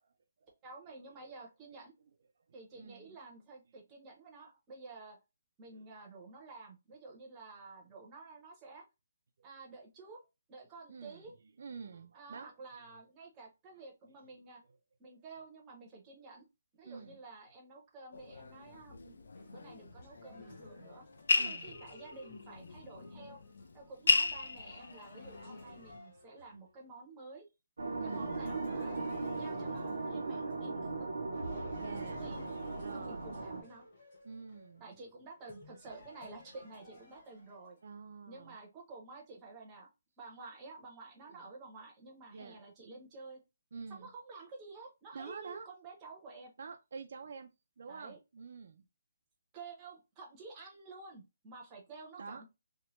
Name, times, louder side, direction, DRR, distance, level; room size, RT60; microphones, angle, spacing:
voice 1, 0.6-1.9 2.5-5.2 5.6-8.8 9.4-10.2 10.5-11.3 12.1-14.6 15.0-16.4 16.7-21.0 21.3-23.4 23.7-27.5 28.0-28.9 29.3-31.1 32.0-32.4 32.9-33.8 34.8-37.8 38.3-39.9 40.2-43.4 43.9-46.5 47.9-48.2 49.5-52.4, right 3 dB, 15° right, 0.6 m, -51 dB
voice 2, 2.7-3.2 5.7-5.9 10.9-12.5 16.8-17.2 21.4-21.7 28.0-28.4 31.7-32.2 32.8-33.3 34.2-35.0 37.8-38.6 41.3-41.4 42.3-42.6 43.7-44.1 45.1-45.7 46.6-47.5 47.8-48.8 52.2-52.4, right 5 dB, 45° right, 0.3 m, -47 dB
sound 1, 18.1-26.0, left 3 dB, 70° left, 0.4 m, -36 dB
sound 2, 19.3-26.7 28.1-30.9 31.3-37.8, left 1 dB, 30° left, 1.1 m, -53 dB
sound 3, 27.8-33.6, right 3 dB, 85° right, 0.7 m, -38 dB
3.0 x 2.1 x 3.0 m
hypercardioid pair, 180°, 0 cm